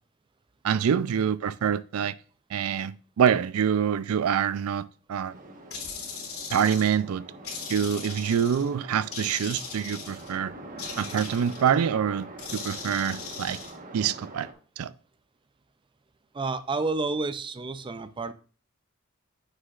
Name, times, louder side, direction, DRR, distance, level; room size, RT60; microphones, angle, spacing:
voice 1, 0.6-2.2 2.5-5.4 6.5-7.2 7.7-10.5 11.0-13.6 13.9-14.5 14.8-14.9, right 8 dB, 85° right, 0.4 m, -26 dB
sound 1, 5.3-14.5, right 2 dB, 40° right, 1.2 m, -44 dB
sound 2, 5.7-7.0 7.4-8.7 9.1-10.4 10.8-11.8 12.4-13.7, left 5 dB, 85° left, 2.7 m, -39 dB
voice 2, 16.3-18.3, right 3 dB, 25° right, 0.4 m, -30 dB
9.3 x 6.6 x 2.4 m
head